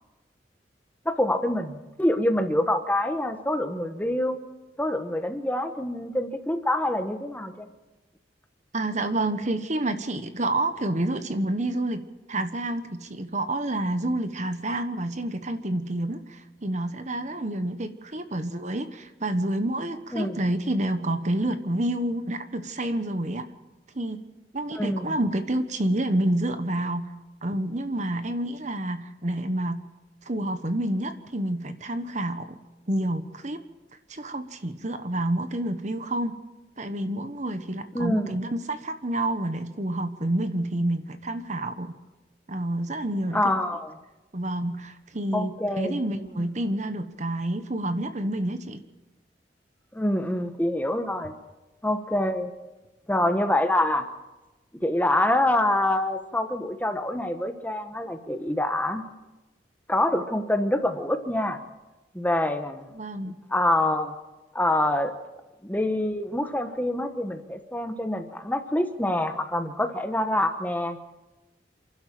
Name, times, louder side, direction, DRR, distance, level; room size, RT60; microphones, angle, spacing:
voice 1, 1.0-4.4 4.8-7.7 20.1-20.4 24.8-25.2 37.9-38.4 43.3-43.9 45.3-46.0 46.3-46.4 49.9-51.3 51.8-52.5 53.1-54.1 54.8-59.0 59.9-61.6 62.1-62.8 63.5-64.1 64.5-65.1 65.6-71.0, left 1 dB, 10° left, 7 dB, 1.2 m, -26 dB
voice 2, 8.7-12.0 12.3-23.4 23.9-24.2 24.5-27.1 27.4-29.8 30.2-32.6 32.9-33.6 34.1-36.4 36.8-41.9 42.5-43.4 44.3-48.8 62.9-63.3, right 1 dB, 40° right, 9 dB, 1.2 m, -28 dB
28.0 x 12.0 x 7.7 m, 1.1 s
head